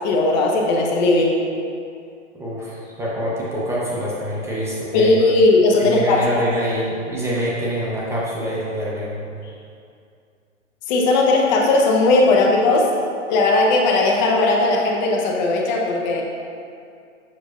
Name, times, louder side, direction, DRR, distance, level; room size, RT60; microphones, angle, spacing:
voice 1, 0.0-1.4 4.9-6.2 10.9-12.9 13.3-16.2, left 2 dB, 35° left, -1 dB, 0.8 m, -17 dB
voice 2, 2.3-5.2 5.9-9.3, equal, 5° right, -7 dB, 0.8 m, -25 dB
7.3 x 6.1 x 2.5 m, 2.4 s
hypercardioid pair, 130°, 38 cm